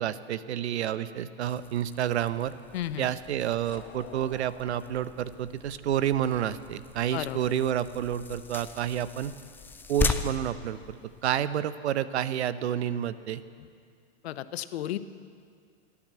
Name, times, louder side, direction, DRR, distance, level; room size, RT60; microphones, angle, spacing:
voice 1, 0.0-2.5 3.0-9.3 9.9-11.0 11.2-13.4, right 10 dB, 75° right, 15 dB, 0.8 m, -29 dB
sound 1, 1.4-11.6, left 4 dB, 5° left, 0.3 m, -38 dB
voice 2, 2.7-3.1 7.1-7.4 14.2-15.0, left 12 dB, 70° left, 14 dB, 0.8 m, -33 dB
sound 2, 3.7-6.6, left 7 dB, 35° left, 1.6 m, -51 dB
16.5 x 9.8 x 7.6 m, 2.2 s
hypercardioid pair, 115°, 33 cm